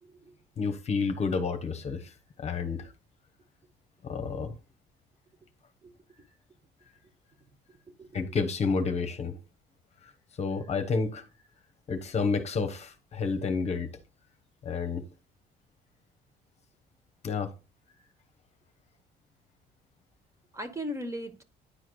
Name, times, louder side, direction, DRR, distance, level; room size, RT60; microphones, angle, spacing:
voice 1, 0.0-0.4 2.8-2.9 5.8-5.9 7.7-8.4 20.5-21.4, equal, 15° right, 1.0 m, -39 dB
voice 2, 0.6-2.1 2.4-2.9 4.0-4.5 8.1-9.4 10.4-11.2 11.9-13.9 14.6-15.1 17.2-17.5, left 5 dB, 40° left, 1.0 m, -30 dB
9.8 x 4.7 x 2.3 m
cardioid pair, 110°, 17 cm